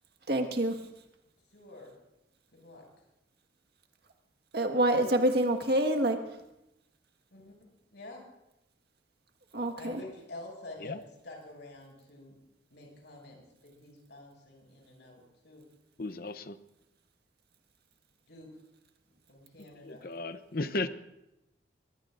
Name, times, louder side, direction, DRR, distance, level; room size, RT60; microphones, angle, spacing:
voice 1, 0.3-0.8 4.5-6.2 9.5-10.0, right 1 dB, 60° right, 4 dB, 1.7 m, -26 dB
voice 2, 1.5-1.9 2.5-2.8 7.3-8.2 9.8-11.0 11.2-12.4 12.7-15.6 18.3-18.5 19.3-20.1, left 2 dB, 70° left, 0 dB, 6.6 m, -48 dB
voice 3, 16.0-16.6 19.8-20.9, left 2 dB, 50° left, 11 dB, 0.8 m, -35 dB
22.5 x 22.5 x 2.6 m, 0.91 s
head